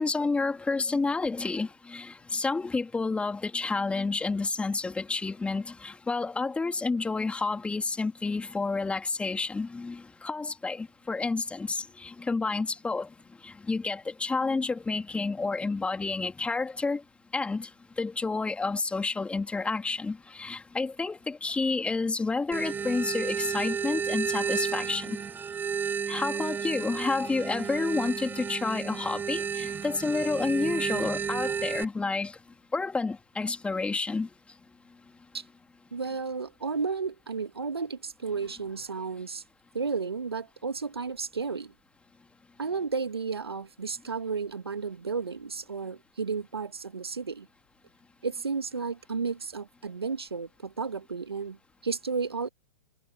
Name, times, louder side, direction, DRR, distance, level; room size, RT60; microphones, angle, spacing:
voice 1, 0.0-13.1 13.4-17.0 17.3-17.7 18.0-25.2 26.1-32.4 32.7-34.3, left 3 dB, 10° left, 3.1 m, -30 dB
sound 1, 22.5-31.8, right 7 dB, 15° right, 1.1 m, -32 dB
voice 2, 35.9-39.4 39.7-41.7 42.6-47.5 48.2-51.6 51.8-52.5, right 5 dB, 80° right, 2.2 m, -33 dB
figure-of-eight pair, 110°, 13 cm